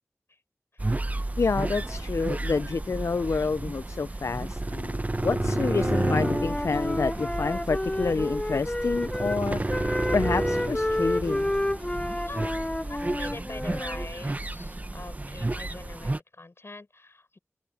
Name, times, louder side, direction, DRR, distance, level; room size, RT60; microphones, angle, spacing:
sound 1, 0.8-16.2, right 2 dB, 30° right, 0.8 m, -31 dB
voice 1, 1.4-9.8 10.1-11.5, left 4 dB, 70° left, 0.4 m, -28 dB
sound 2, 1.9-12.5, right 1 dB, 10° right, 7.0 m, -54 dB
Wind instrument woodwind instrument, 5.7-9.4 9.7-14.1, left 1 dB, 15° left, 0.7 m, -30 dB
voice 2, 12.0-17.4, left 2 dB, 55° left, 6.9 m, -43 dB
wide cardioid pair, 70°, 5 cm